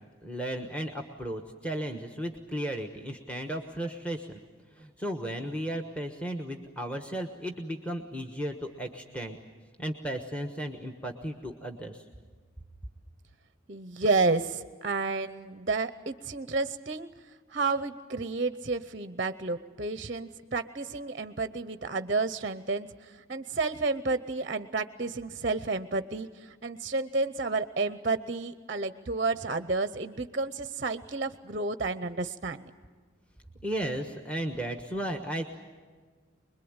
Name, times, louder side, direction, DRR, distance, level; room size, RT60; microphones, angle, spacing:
voice 1, 0.2-4.3 4.8-9.4 9.8-12.0 33.6-35.6, right 1 dB, 5° left, 5 dB, 1.2 m, -35 dB
voice 2, 13.7-17.1 17.5-32.6, right 3 dB, 35° right, 12 dB, 0.7 m, -31 dB
25.5 x 22.0 x 8.8 m, 1.5 s
head